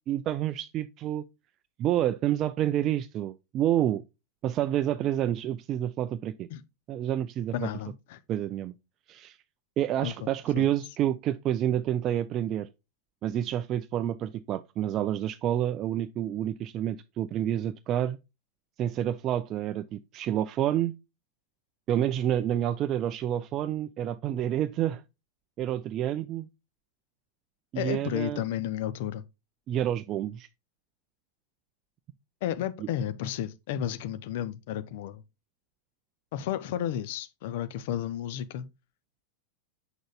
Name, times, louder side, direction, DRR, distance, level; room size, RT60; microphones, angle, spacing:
voice 1, 0.1-1.2 1.8-4.0 4.4-6.5 6.9-7.7 8.3-8.7 9.1-9.4 9.8-12.7 13.2-18.2 18.8-20.9 21.9-25.0 25.6-26.5 27.7-28.4 29.7-30.5 32.8-32.9, right 11 dB, 35° right, 0.4 m, -28 dB
voice 2, 7.5-8.2 10.0-10.3 10.6-10.7 27.7-29.2 32.4-35.2 36.3-38.7, left 11 dB, 50° left, 0.6 m, -32 dB
7.0 x 6.3 x 2.3 m
figure-of-eight pair, 90°, 0 cm